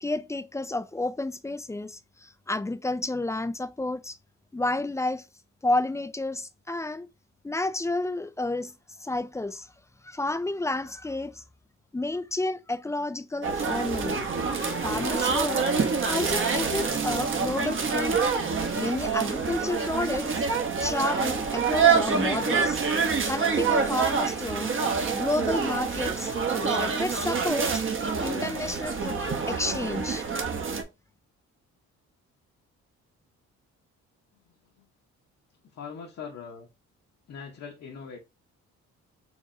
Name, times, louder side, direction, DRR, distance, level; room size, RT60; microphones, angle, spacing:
voice 1, 0.0-4.2 4.5-5.3 5.6-7.1 7.4-8.7 9.0-9.7 10.0-11.4 11.9-14.3 14.8-15.7 16.1-18.2 18.7-20.3 20.8-22.8 23.2-24.8 25.1-26.3 26.6-29.2 29.5-30.3, left 2 dB, 10° left, 0.3 m, -30 dB
sound 1, 13.4-30.8, right 5 dB, 40° right, 0.9 m, -26 dB
voice 2, 34.5-34.9 35.7-36.7 37.3-38.2, left 6 dB, 60° left, 1.0 m, -41 dB
4.7 x 3.0 x 2.6 m
cardioid pair, 90°, 30 cm